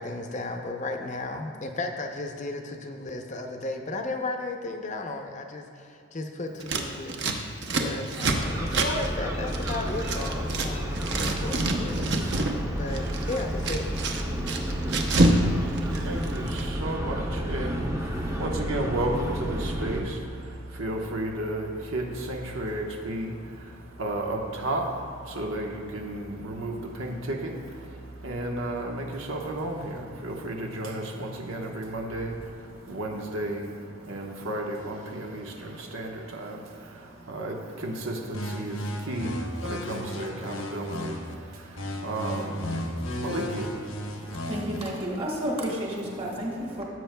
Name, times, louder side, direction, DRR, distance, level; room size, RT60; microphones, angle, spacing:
voice 1, 0.0-7.4 7.7-13.9, left 2 dB, 35° left, 4 dB, 0.6 m, -35 dB
Scissors, 6.6-10.7 10.9-12.6 12.9-15.4 15.7-16.6, right 2 dB, 55° right, 0.8 m, -27 dB
sound 1, 8.4-20.0, equal, 15° right, 0.7 m, -31 dB
voice 2, 15.1-44.6 44.8-45.2 46.4-46.7, right 1 dB, 85° right, 0 dB, 1.2 m, -33 dB
sound 2, 38.3-41.3 41.8-44.8, left 1 dB, 80° left, 0.9 m, -34 dB
voice 3, 44.0-46.8, equal, 30° right, -2 dB, 1.7 m, -31 dB
15.5 x 7.7 x 2.3 m, 2.6 s
head